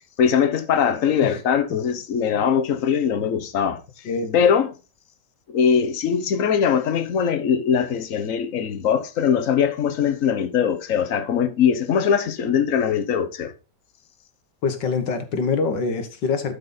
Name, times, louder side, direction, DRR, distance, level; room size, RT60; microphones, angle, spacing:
voice 1, 0.2-3.8 4.3-4.7 5.5-13.5, left 7 dB, 50° left, 1.3 m, -21 dB
voice 2, 4.0-4.3 14.6-16.6, left 5 dB, 85° left, 2.1 m, -24 dB
12.0 x 5.3 x 4.0 m
omnidirectional pair, 1.9 m